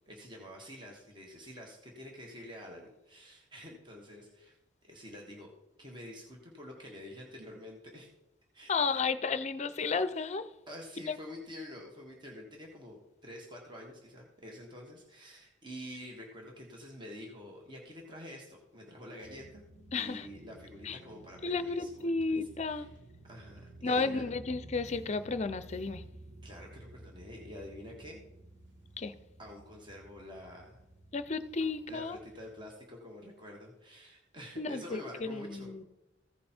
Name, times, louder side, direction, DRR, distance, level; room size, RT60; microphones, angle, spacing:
voice 1, 0.1-4.6 4.8-5.5 5.8-8.1 8.5-9.0 10.7-19.6 19.9-22.1 22.6-22.9 23.2-24.2 26.4-28.2 29.4-30.8 31.9-35.8, left 1 dB, 25° right, 1.5 m, -48 dB
voice 2, 8.7-10.4 19.9-20.3 20.8-21.0 21.4-22.9 23.8-26.0 29.0-29.2 31.1-32.2 34.6-35.8, left 4 dB, 40° left, 0.5 m, -33 dB
sound 1, 19.2-32.5, right 1 dB, 80° right, 1.8 m, -53 dB
15.0 x 5.3 x 4.4 m
head